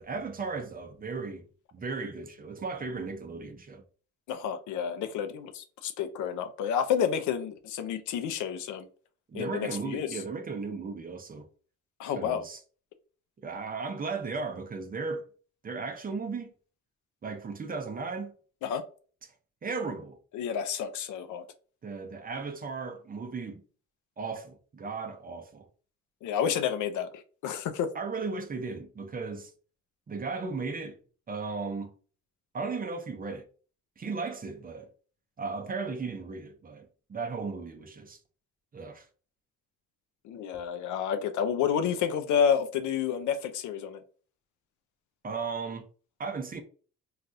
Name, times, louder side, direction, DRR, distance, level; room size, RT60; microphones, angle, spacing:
voice 1, 0.0-1.4 1.7-3.8 9.3-11.5 12.2-12.6 13.4-15.2 15.6-16.5 17.2-18.3 19.6-20.2 21.8-23.6 24.2-25.7 27.9-29.5 30.1-31.0 31.3-31.9 32.5-33.5 34.0-34.9 35.4-38.2 38.7-39.1 45.2-45.9 46.2-46.6, right 4 dB, 30° right, 0.6 m, -36 dB
voice 2, 4.3-8.9 9.3-10.2 12.0-12.4 18.6-18.8 20.3-21.4 26.2-27.9 40.2-44.0, left 8 dB, 75° left, 0.5 m, -30 dB
3.3 x 2.4 x 2.6 m
cardioid pair, 90°, 30 cm